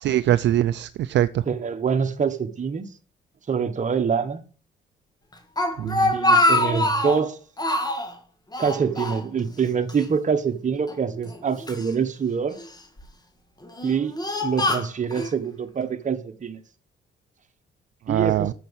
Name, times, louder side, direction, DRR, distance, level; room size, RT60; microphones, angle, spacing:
voice 1, 0.0-1.3 5.8-6.1 18.1-18.5, right 12 dB, 65° right, 0.5 m, -22 dB
voice 2, 1.5-2.9 3.5-4.4 6.1-7.4 8.6-12.6 13.8-16.6 18.1-18.5, right 6 dB, 40° right, 1.2 m, -25 dB
Speech, 5.3-7.2 7.6-8.1 8.5-9.6 9.9-10.0 10.9-11.9 12.6-13.0 13.6-15.3, left 1 dB, 20° left, 1.8 m, -24 dB
7.2 x 6.0 x 7.0 m
cardioid pair, 90°, 20 cm